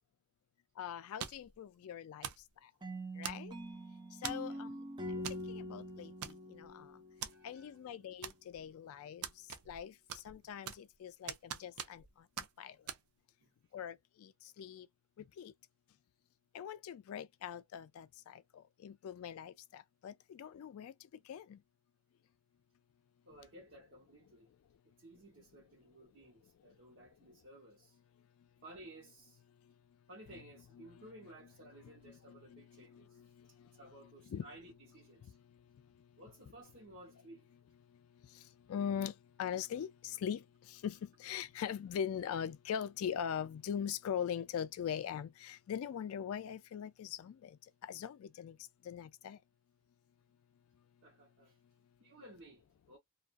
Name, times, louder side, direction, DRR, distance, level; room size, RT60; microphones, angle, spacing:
voice 1, 0.8-2.3 3.2-3.5 4.2-4.7 5.1-5.2 5.5-6.1 6.5-6.8 7.4-9.2 9.7-9.9 10.2-12.0 12.6-12.7 13.7-13.9 14.2-14.3 14.6-14.9 15.4-15.5 16.5-18.3 18.8-20.9 21.3-21.6 32.3-32.6 34.3-34.4 38.7-39.1 39.4-40.4 40.7-47.5 47.9-48.6 48.9-49.4, left 8 dB, 75° left, 0.3 m, -41 dB
sound 1, 1.2-1.5 2.2-2.5 3.2-3.7 4.2-4.5 5.2-5.4 5.7-5.8 6.2-6.7 7.2-7.3 8.2-8.7 9.2-9.8 10.1-10.9 11.3-12.1 12.4-12.5 12.9-13.0, right 9 dB, 85° right, 0.5 m, -43 dB
sound 2, 2.8-7.7, equal, 20° right, 0.5 m, -44 dB
voice 2, 7.3-7.8 13.4-13.5 23.3-24.5 24.8-28.0 28.6-29.4 30.1-33.2 33.6-35.4 36.2-37.5 51.0-51.6 52.0-53.0, right 1 dB, 55° right, 0.9 m, -56 dB
2.3 x 2.3 x 2.4 m
head